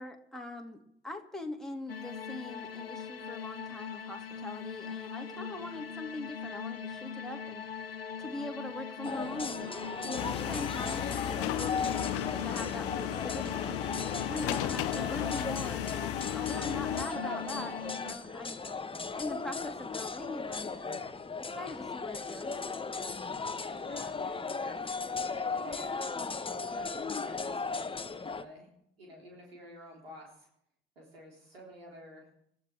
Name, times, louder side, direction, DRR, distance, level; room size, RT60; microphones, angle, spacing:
voice 1, 0.0-7.6 8.2-9.7 10.0-13.8 14.1-18.6 19.2-20.8 21.4-22.5, left 2 dB, ahead, 1 dB, 2.4 m, -42 dB
sound 1, 1.9-18.1, left 6 dB, 90° left, 0.5 m, -41 dB
voice 2, 5.2-5.7 9.6-10.1 12.2-12.8 16.5-16.7 17.5-17.9 18.2-18.7 20.4-21.1 22.9-26.1 26.5-27.8 28.1-28.7 29.0-30.5 31.0-32.3, equal, 80° right, -2 dB, 4.1 m, -52 dB
sound 2, 9.0-28.4, left 4 dB, 20° left, 1.2 m, -37 dB
sound 3, 10.1-17.1, left 13 dB, 50° left, 0.9 m, -35 dB
27.5 x 13.5 x 3.5 m, 0.76 s
figure-of-eight pair, 50°, 29 cm